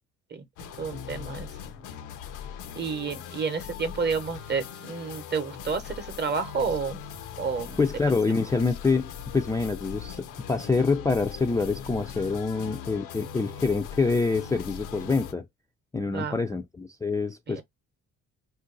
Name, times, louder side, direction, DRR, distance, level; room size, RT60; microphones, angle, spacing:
sound 1, 0.6-15.3, left 8 dB, 90° left, 0.7 m, -40 dB
voice 1, 0.8-1.5 2.7-7.0 7.4-7.8 16.1-16.4 17.5-17.6, right 5 dB, 35° right, 0.8 m, -30 dB
voice 2, 7.8-15.4 15.9-17.6, left 4 dB, 10° left, 0.3 m, -26 dB
2.5 x 2.3 x 3.8 m
cardioid pair, 90°, 30 cm